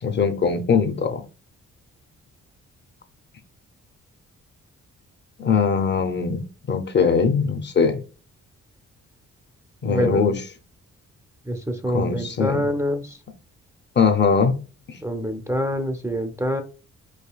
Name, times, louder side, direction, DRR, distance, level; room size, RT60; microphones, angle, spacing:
voice 1, 0.0-1.2 5.4-6.4 6.7-8.0 9.8-10.4 11.9-12.6 14.0-14.6 14.9-15.0, left 5 dB, 35° left, 7 dB, 0.6 m, -21 dB
voice 2, 9.8-10.3 11.5-13.2 15.0-16.6, equal, 10° right, 4 dB, 0.4 m, -26 dB
4.8 x 2.6 x 2.3 m, 0.34 s
cardioid pair, 105°, 30 cm